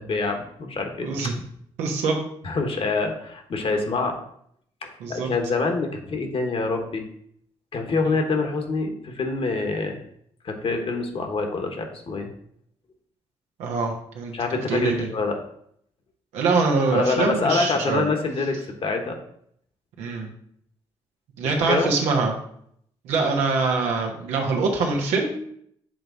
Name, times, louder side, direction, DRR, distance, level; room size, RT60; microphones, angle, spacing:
voice 1, 0.0-1.1 2.4-4.1 4.8-7.0 7.7-10.0 10.4-12.3 14.3-15.4 16.9-19.2 21.4-21.9, left 3 dB, 55° left, 4 dB, 1.4 m, -26 dB
voice 2, 1.0-1.3 1.8-2.2 5.0-5.3 13.6-14.4 14.7-15.1 16.3-18.1 20.0-20.3 21.4-22.3 23.0-25.4, right 4 dB, 90° right, 1 dB, 1.2 m, -24 dB
7.7 x 3.5 x 4.0 m, 0.68 s
supercardioid pair, 55°, 11 cm